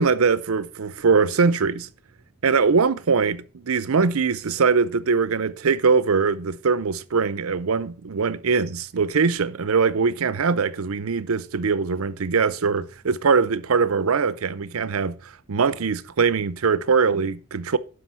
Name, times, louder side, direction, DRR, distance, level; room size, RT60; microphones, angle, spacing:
voice 1, 0.0-1.9 2.4-17.8, right 5 dB, 80° right, 0.6 m, -22 dB
11.5 x 5.2 x 5.5 m
head